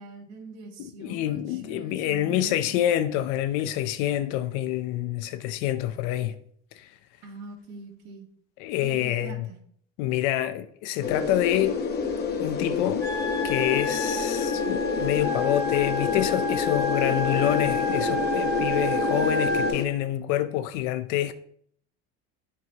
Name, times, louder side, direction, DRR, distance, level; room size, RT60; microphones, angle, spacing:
voice 1, 0.0-2.9 7.2-8.3 8.8-9.6, right 3 dB, 60° right, 2.4 m, -43 dB
voice 2, 0.8-6.4 6.8-6.9 8.6-9.5 10.0-11.8 12.4-13.1 13.4-21.3, left 12 dB, 90° left, 0.6 m, -27 dB
sound 1, 11.0-19.8, left 5 dB, 35° left, 1.0 m, -28 dB
sound 2, 13.0-19.7, left 1 dB, 10° left, 3.4 m, -30 dB
15.0 x 5.0 x 2.8 m
cardioid pair, 145°, 30 cm